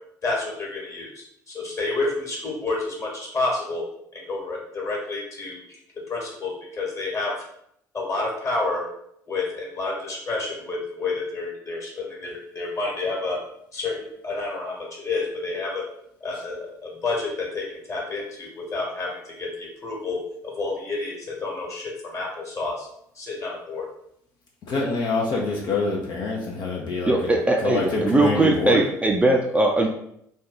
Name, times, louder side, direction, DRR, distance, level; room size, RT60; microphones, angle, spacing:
voice 1, 0.2-3.8 4.1-5.8 6.1-7.3 7.9-8.8 9.3-13.4 13.7-14.0 14.2-15.8 16.2-19.1 19.4-22.9 23.1-23.9, left 3 dB, 35° left, -2 dB, 1.5 m, -29 dB
voice 2, 24.7-27.3 27.6-28.8, left 3 dB, 55° left, -2 dB, 0.7 m, -25 dB
voice 3, 27.1-29.9, right 2 dB, 15° right, 1 dB, 0.5 m, -20 dB
2.6 x 2.3 x 3.9 m, 0.72 s
hypercardioid pair, 60°, 9 cm